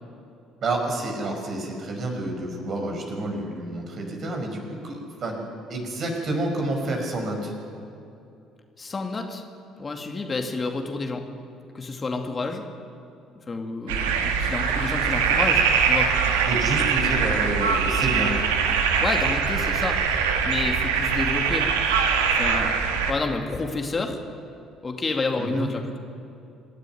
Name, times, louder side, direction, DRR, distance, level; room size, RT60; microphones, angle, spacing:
voice 1, 0.6-5.4 5.7-7.5 16.5-18.3 25.4-25.7, right 2 dB, 45° right, 2 dB, 5.7 m, -29 dB
voice 2, 8.8-9.4 9.8-11.3 11.7-12.6 13.5-16.1 18.9-20.0 20.4-21.7 22.0-22.7 23.1-24.2 24.8-26.0, left 3 dB, 30° left, 3 dB, 2.5 m, -29 dB
sound 1, 13.9-23.1, right 6 dB, 75° right, 1.8 m, -22 dB
26.5 x 12.0 x 9.4 m, 2.6 s
figure-of-eight pair, 50°, 0 cm